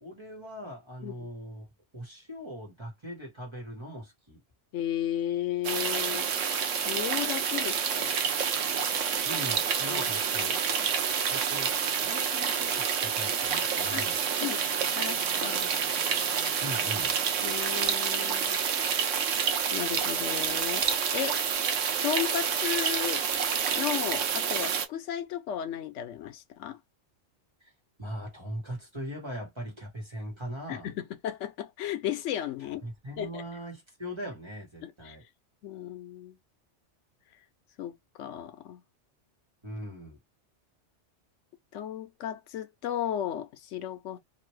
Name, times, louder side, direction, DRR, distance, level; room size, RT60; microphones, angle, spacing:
voice 1, 0.0-1.7 1.9-4.4 9.2-10.5 11.3-11.7 12.0-14.3 16.6-17.1 28.0-30.9 32.8-35.2 39.6-40.2, equal, 25° right, 1.4 m, -40 dB
voice 2, 4.7-6.3 6.6-8.1 9.9-10.9 13.9-14.0 14.4-15.8 17.4-18.6 19.7-20.9 21.1-21.4 22.0-23.2 23.7-26.8 30.7-32.9 33.2-33.4 34.8-35.2 35.6-36.4 37.8-38.8 41.7-44.2, left 10 dB, 80° left, 0.9 m, -35 dB
sound 1, 5.6-24.9, right 7 dB, 90° right, 1.0 m, -28 dB
2.9 x 2.6 x 3.1 m
omnidirectional pair, 1.2 m